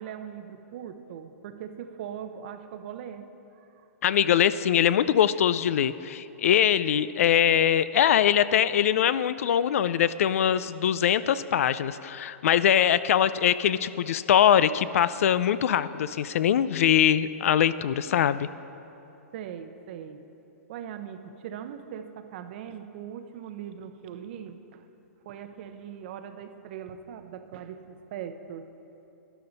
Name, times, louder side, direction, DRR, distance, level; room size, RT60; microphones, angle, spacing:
voice 1, 0.0-3.3 3.5-3.8 19.3-20.3 20.7-24.8 25.2-28.7, right 8 dB, 45° right, 9 dB, 0.7 m, -40 dB
voice 2, 4.0-18.5, left 9 dB, 65° left, 16 dB, 0.4 m, -22 dB
12.0 x 11.0 x 4.0 m, 2.9 s
hypercardioid pair, 160°, 8 cm